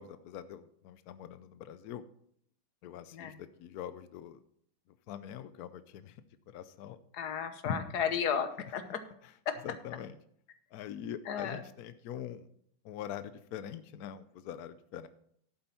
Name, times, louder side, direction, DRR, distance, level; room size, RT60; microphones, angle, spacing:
voice 1, 0.0-2.0 2.8-4.4 5.1-6.2 6.5-7.0 9.6-10.1 10.7-12.5 12.8-15.1, left 10 dB, 80° left, 12 dB, 0.8 m, -44 dB
voice 2, 7.1-9.0 9.5-9.6 11.3-11.6, left 7 dB, 60° left, 9 dB, 1.4 m, -33 dB
11.5 x 8.5 x 4.3 m, 0.67 s
omnidirectional pair, 2.3 m